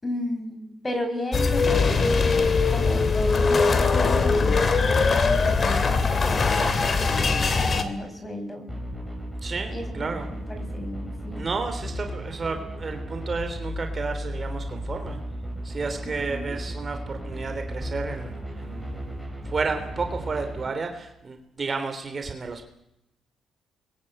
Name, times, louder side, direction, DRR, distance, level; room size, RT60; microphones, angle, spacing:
voice 1, 0.0-8.7 9.7-11.5 16.0-16.6, left 1 dB, 20° left, 6 dB, 6.9 m, -34 dB
sound 1, 1.3-7.8, left 4 dB, 40° left, 2.9 m, -21 dB
sound 2, 8.7-20.7, equal, ahead, 7.7 m, -35 dB
voice 2, 9.4-10.3 11.4-15.2 15.6-19.1 19.5-22.6, right 4 dB, 35° right, 6 dB, 3.5 m, -32 dB
27.5 x 22.0 x 8.9 m, 0.86 s
cardioid pair, 90°, 0 cm